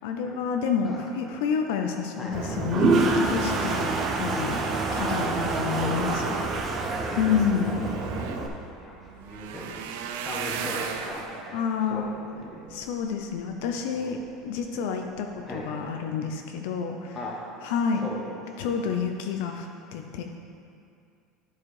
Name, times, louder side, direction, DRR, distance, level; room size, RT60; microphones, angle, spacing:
voice 1, 0.0-4.6 5.0-6.3 7.2-7.7 11.5-12.1 12.7-14.2 14.4-17.2 17.6-18.0 18.6-19.7 19.9-20.2, left 7 dB, 70° left, 4 dB, 0.6 m, -29 dB
Toilet flush, 2.3-8.5, right 3 dB, 25° right, 0.7 m, -26 dB
voice 2, 5.8-7.2 7.8-8.5 8.8-12.7 13.9-14.2 15.5-15.7 17.1-17.4 17.9-18.8, left 1 dB, 10° left, -3 dB, 1.3 m, -38 dB
sound 1, 7.5-13.6 14.2-14.6 15.1-15.3 15.5-15.6, right 7 dB, 80° right, 0.6 m, -38 dB
11.0 x 4.8 x 4.8 m, 2.4 s
cardioid pair, 175°, 0 cm